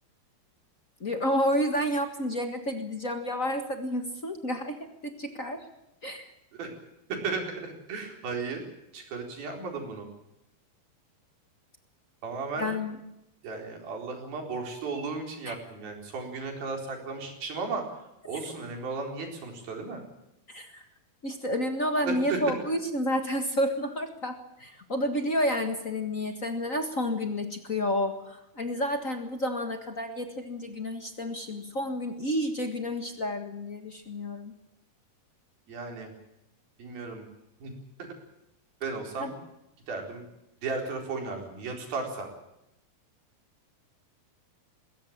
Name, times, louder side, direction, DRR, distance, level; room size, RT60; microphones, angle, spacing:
voice 1, 1.0-4.8 5.0-5.7 6.0-6.3 12.6-13.0 15.5-15.6 20.5-20.9 21.2-34.5 39.2-39.3, equal, 40° left, 6 dB, 1.1 m, -30 dB
voice 2, 7.1-8.6 8.9-10.1 12.2-12.7 13.4-20.0 22.0-22.4 35.7-36.1 36.8-37.2 37.6-37.7 38.0-38.1 38.8-39.4 39.9-40.2 40.6-42.3, right 4 dB, 75° right, 3 dB, 6.1 m, -35 dB
21.0 x 17.5 x 8.7 m, 0.86 s
omnidirectional pair, 4.3 m